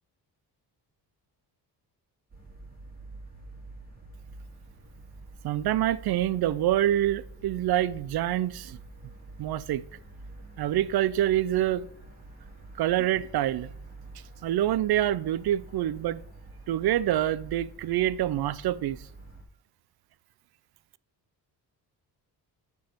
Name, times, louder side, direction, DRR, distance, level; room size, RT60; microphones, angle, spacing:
sound 1, 2.3-19.4, right 2 dB, 20° right, 3.3 m, -47 dB
voice 1, 5.4-8.8 9.4-9.8 10.6-11.9 12.8-13.7 14.4-16.2 16.7-19.0, right 12 dB, 65° right, 0.5 m, -26 dB
10.5 x 4.6 x 5.1 m
cardioid pair, 90°, 41 cm